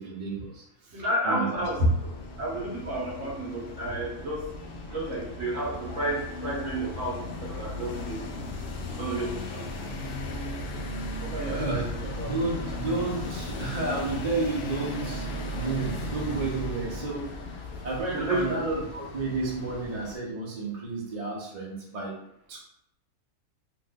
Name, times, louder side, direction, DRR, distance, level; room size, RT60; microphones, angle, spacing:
voice 1, 0.0-1.6 11.4-11.9 12.2-15.3 15.5-17.3 17.8-22.1 22.5-22.6, right 3 dB, 30° right, -5 dB, 0.8 m, -31 dB
voice 2, 0.9-2.1 2.4-4.4 4.9-8.4 8.9-9.9 11.2-12.3 18.1-18.6, right 1 dB, 60° right, -4 dB, 1.3 m, -31 dB
sound 1, 1.6-20.2, left 2 dB, 70° left, 0.5 m, -36 dB
3.0 x 2.5 x 3.5 m, 0.78 s
omnidirectional pair, 1.6 m